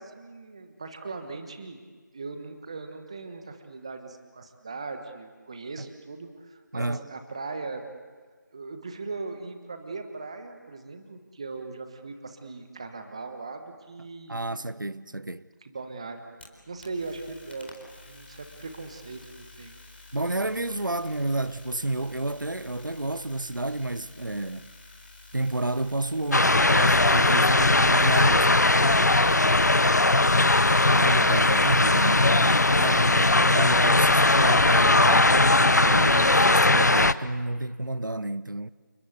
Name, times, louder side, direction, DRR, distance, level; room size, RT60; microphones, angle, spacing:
voice 1, 0.0-1.8 2.1-7.8 8.5-14.4 15.6-16.2 16.7-17.8 18.1-19.8 29.5-29.9 32.5-32.8, right 3 dB, 20° right, 1.3 m, -39 dB
voice 2, 6.7-7.1 14.3-15.5 20.1-24.7 25.3-28.7 30.9-38.7, right 2 dB, 85° right, 0.8 m, -30 dB
sound 1, 16.1-33.4, left 2 dB, 35° left, 4.1 m, -50 dB
sound 2, 26.3-37.1, left 2 dB, 60° left, 0.8 m, -19 dB
29.0 x 20.5 x 8.2 m
figure-of-eight pair, 170°, 10 cm